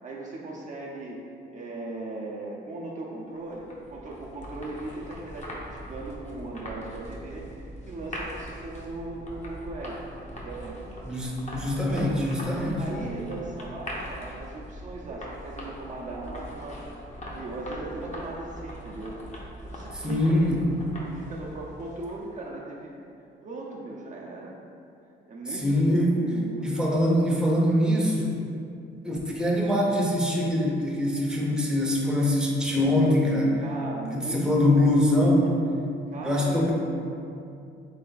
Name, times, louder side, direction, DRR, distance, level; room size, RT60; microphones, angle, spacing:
voice 1, 0.0-1.2 1.5-10.0 10.4-10.8 11.7-12.3 12.7-17.0 17.3-19.2 19.6-20.6 21.1-23.0 23.4-24.6 25.3-26.8 33.6-34.8 36.1-36.7, right 2 dB, 40° right, -3 dB, 0.6 m, -38 dB
sound 1, 3.4-22.4, equal, 35° left, 0.8 m, -41 dB
voice 2, 11.0-12.8 19.9-20.6 25.5-26.1 26.6-28.3 29.0-33.6 34.1-35.6 36.2-36.7, left 1 dB, 5° right, -3 dB, 0.7 m, -23 dB
3.6 x 3.3 x 3.9 m, 2.6 s
cardioid pair, 90°, 20 cm